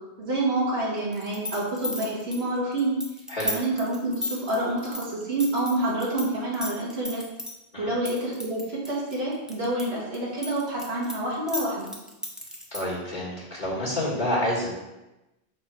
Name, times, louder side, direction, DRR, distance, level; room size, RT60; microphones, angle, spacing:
voice 1, 0.2-3.0 3.4-7.2 7.8-11.9, right 1 dB, 70° right, -5 dB, 1.8 m, -28 dB
sound 1, 1.1-6.3 6.5-7.5 8.1-9.8 10.1-12.9, left 1 dB, ahead, 0.8 m, -33 dB
voice 2, 12.7-14.7, left 1 dB, 45° left, -7 dB, 1.7 m, -28 dB
6.0 x 4.7 x 4.5 m, 1.0 s
omnidirectional pair, 1.1 m